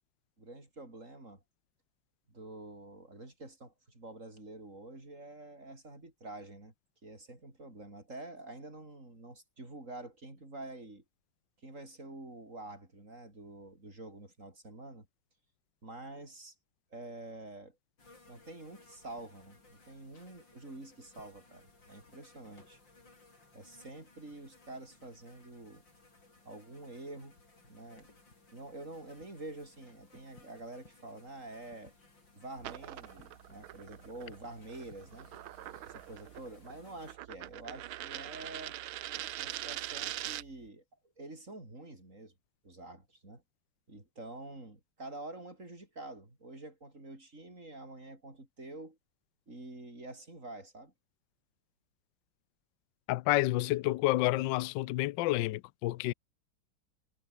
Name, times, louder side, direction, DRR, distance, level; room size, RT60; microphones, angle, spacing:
voice 1, 0.4-1.4 2.3-6.7 7.0-11.0 11.6-15.1 15.8-16.6 16.9-17.8 18.3-22.8 23.5-25.8 26.5-27.4 27.7-28.1 28.5-31.9 32.3-35.3 35.9-38.8 39.4-40.8 41.2-42.3 42.6-43.4 43.9-49.0 49.5-50.9, right 2 dB, 35° right, 6.9 m, -47 dB
sound 1, 18.0-37.2, left 3 dB, 55° left, 6.5 m, -61 dB
sound 2, 32.6-40.6, right 14 dB, 75° right, 1.5 m, -43 dB
voice 2, 53.1-56.1, left 17 dB, 70° left, 1.1 m, -29 dB
omnidirectional pair, 2.4 m